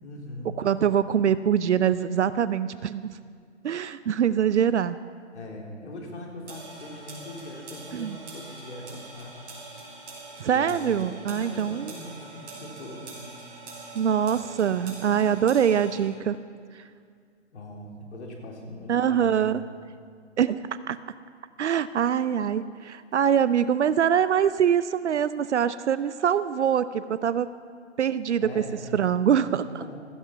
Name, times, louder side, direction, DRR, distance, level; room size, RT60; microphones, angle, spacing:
voice 1, 0.0-0.6 5.3-9.5 10.5-11.0 11.3-13.1 17.5-19.5 28.4-29.0 29.3-30.0, left 1 dB, 65° left, -1 dB, 3.8 m, -41 dB
voice 2, 0.6-3.1 3.6-5.0 7.9-8.2 10.4-11.9 13.9-16.4 18.9-19.6 20.4-20.6 20.9-21.0 21.6-27.5 28.0-28.6 28.9-30.0, right 8 dB, 70° right, 14 dB, 0.6 m, -24 dB
sound 1, 6.5-16.1, right 3 dB, 35° right, 4.7 m, -44 dB
16.5 x 13.5 x 5.9 m, 2.1 s
hypercardioid pair, 145°, 36 cm